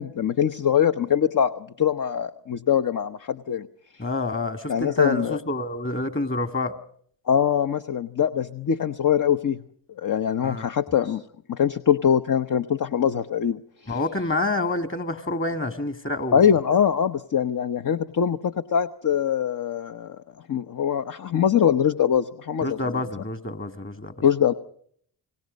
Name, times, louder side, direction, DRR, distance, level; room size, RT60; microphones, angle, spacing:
voice 1, 0.0-3.7 4.7-5.4 7.3-9.6 10.0-14.0 16.3-20.2 20.5-23.0 24.2-24.5, left 8 dB, 40° left, 0.9 m, -23 dB
voice 2, 4.0-6.7 10.4-10.7 13.9-16.5 22.6-24.1, left 2 dB, 25° left, 2.2 m, -28 dB
29.5 x 19.5 x 5.3 m
hypercardioid pair, 50°, 48 cm